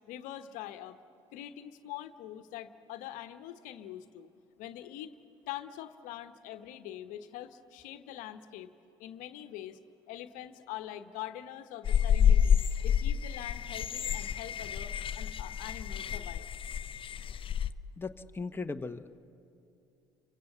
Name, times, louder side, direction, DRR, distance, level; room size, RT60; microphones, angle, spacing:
voice 1, 0.1-1.0 1.3-4.3 4.6-5.1 5.5-8.7 9.0-9.8 10.1-16.5, left 12 dB, 65° left, 10 dB, 1.1 m, -44 dB
sound 1, 11.8-17.7, left 8 dB, 40° left, 0.7 m, -29 dB
voice 2, 18.0-19.2, left 4 dB, 15° left, 7 dB, 1.0 m, -38 dB
30.0 x 24.0 x 7.9 m, 2.6 s
hypercardioid pair, 60°, 14 cm